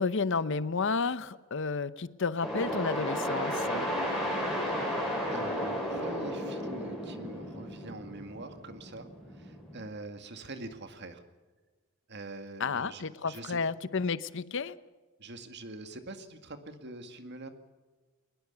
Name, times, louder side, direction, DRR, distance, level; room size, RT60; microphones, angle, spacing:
voice 1, 0.0-3.9 12.6-14.7, left 4 dB, 65° left, 0.8 m, -31 dB
sound 1, 2.4-9.9, equal, ahead, 7.7 m, -34 dB
voice 2, 5.3-11.2 12.1-13.6 15.2-17.5, right 2 dB, 55° right, 2.1 m, -44 dB
22.0 x 20.0 x 6.9 m
head